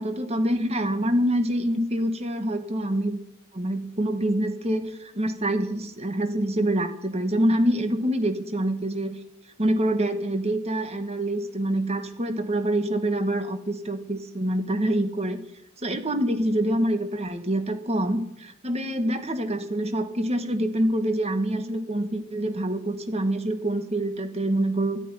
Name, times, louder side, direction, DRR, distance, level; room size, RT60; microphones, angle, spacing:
voice 1, 0.0-3.2 3.5-9.1 9.6-15.4 15.8-25.0, right 1 dB, 30° right, 7 dB, 1.7 m, -26 dB
13.0 x 10.5 x 9.8 m, 0.80 s
head